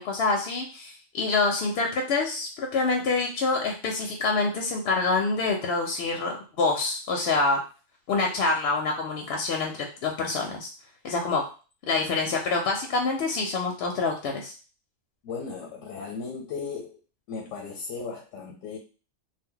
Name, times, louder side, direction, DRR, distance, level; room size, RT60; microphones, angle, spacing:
voice 1, 0.0-7.6 8.1-10.7 11.0-11.4 11.9-14.5, left 3 dB, 65° left, 1 dB, 0.7 m, -26 dB
voice 2, 15.2-17.0 17.3-18.8, left 5 dB, 90° left, 1 dB, 1.0 m, -36 dB
2.2 x 2.1 x 3.6 m, 0.35 s
omnidirectional pair, 1.3 m